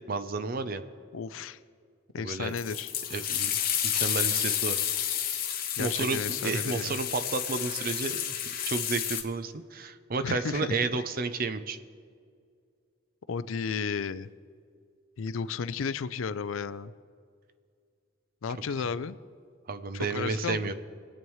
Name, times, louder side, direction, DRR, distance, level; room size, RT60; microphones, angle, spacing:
voice 1, 0.1-0.8 2.2-2.5 3.1-3.5 3.9-4.8 5.4-8.2 8.6-11.8 18.8-18.9 19.7-20.7, right 4 dB, 45° right, 10 dB, 0.6 m, -31 dB
voice 2, 1.1-1.6 2.1-2.9 5.8-7.0 10.2-11.0 13.3-14.3 15.2-16.9 18.4-19.2 19.9-20.7, left 5 dB, 90° left, 15 dB, 0.4 m, -33 dB
sound 1, 2.6-9.2, left 10 dB, 45° left, 0.8 m, -30 dB
23.0 x 8.7 x 3.2 m, 2.2 s
head